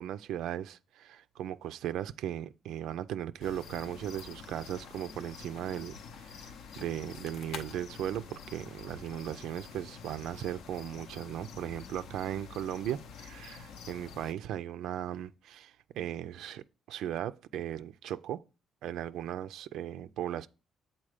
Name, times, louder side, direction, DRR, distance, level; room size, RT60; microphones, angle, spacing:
voice 1, 0.0-18.4 18.8-20.5, right 11 dB, 85° right, 0.3 m, -37 dB
sound 1, 3.4-14.3, left 6 dB, 80° left, 0.6 m, -47 dB
7.4 x 4.0 x 4.9 m
cardioid pair, 90°, 0 cm